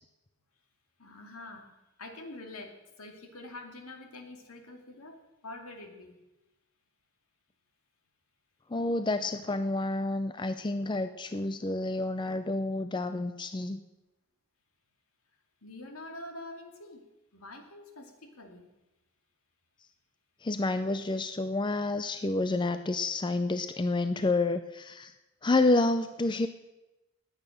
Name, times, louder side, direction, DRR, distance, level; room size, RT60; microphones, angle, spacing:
voice 1, 1.0-1.7 2.0-6.2 15.6-17.0 17.3-18.7, left 2 dB, 75° left, 4 dB, 2.4 m, -46 dB
voice 2, 8.7-13.8 20.4-25.1 25.4-26.5, left 2 dB, 20° left, 10 dB, 0.5 m, -29 dB
19.0 x 8.9 x 6.5 m, 1.0 s
head